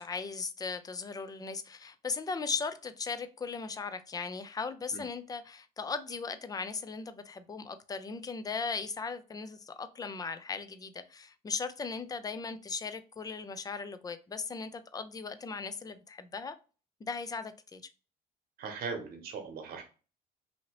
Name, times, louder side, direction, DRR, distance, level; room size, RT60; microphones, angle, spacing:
voice 1, 0.0-16.6 17.0-17.8, left 4 dB, 20° left, 0.4 m, -38 dB
voice 2, 18.6-19.8, right 5 dB, 65° right, 1.0 m, -39 dB
2.7 x 2.7 x 2.9 m
cardioid pair, 110°, 17 cm